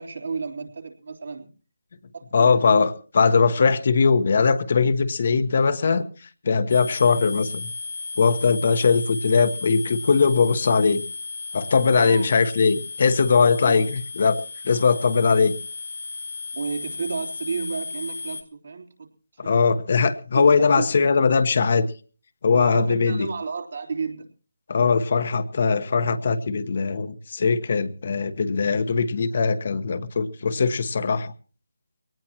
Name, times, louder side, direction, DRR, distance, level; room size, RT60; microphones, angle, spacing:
voice 1, 0.0-1.5 2.1-2.8 11.9-12.3 13.6-13.9 16.5-19.1 19.5-19.6 20.3-20.4 20.8-20.9 22.5-24.2, right 4 dB, 60° right, 2 dB, 3.4 m, -32 dB
voice 2, 2.3-6.0 6.4-7.7 8.2-11.0 11.5-15.5 19.4-21.9 22.4-23.3 24.7-31.3, left 5 dB, 50° left, 9 dB, 1.2 m, -20 dB
sound 1, 6.7-18.4, left 4 dB, 75° left, 2.0 m, -35 dB
22.5 x 18.5 x 2.9 m, 0.38 s
figure-of-eight pair, 160°, 0 cm